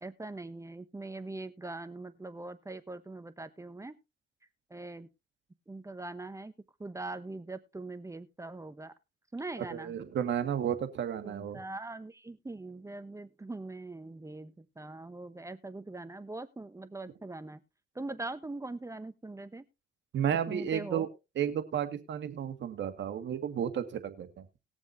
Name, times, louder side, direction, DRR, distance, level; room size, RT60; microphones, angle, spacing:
voice 1, 0.0-4.0 4.7-5.1 5.7-6.5 6.8-8.9 9.3-10.0 11.2-17.6 17.9-19.6 20.5-21.1, right 2 dB, 15° right, 13 dB, 0.9 m, -42 dB
voice 2, 9.7-11.6 20.1-21.1 21.4-24.3, right 9 dB, 65° right, 9 dB, 1.7 m, -32 dB
20.0 x 7.2 x 2.6 m, 0.26 s
cardioid pair, 90°, 20 cm